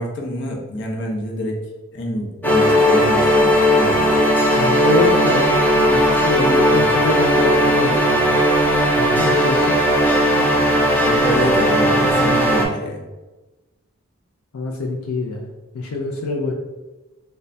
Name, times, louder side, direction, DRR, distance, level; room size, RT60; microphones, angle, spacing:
voice 1, 0.0-1.6 1.9-4.1 6.7-7.0 11.0-13.0, equal, 55° left, 1 dB, 0.7 m, -26 dB
sound 1, 2.4-12.7, equal, 10° left, 0.5 m, -16 dB
voice 2, 4.5-8.3 8.9-9.7 14.5-16.5, left 3 dB, 85° left, 1 dB, 0.5 m, -24 dB
3.3 x 2.2 x 3.9 m, 1.1 s
head